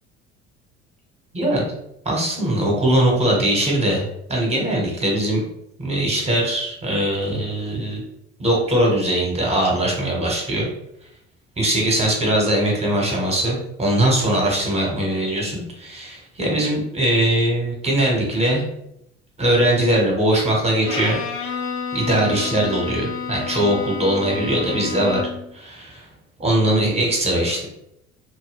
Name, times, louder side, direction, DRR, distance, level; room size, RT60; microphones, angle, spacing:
voice 1, 1.3-1.7 2.0-4.0 4.3-5.4 5.8-8.0 8.4-10.7 11.6-18.6 19.4-21.2 21.9-25.2 25.5-26.0 26.4-27.7, right 1 dB, 20° right, -2 dB, 1.1 m, -21 dB
Bowed string instrument, 20.8-25.5, left 5 dB, 40° left, 0.6 m, -30 dB
2.3 x 2.2 x 3.5 m, 0.78 s
figure-of-eight pair, 60°, 34 cm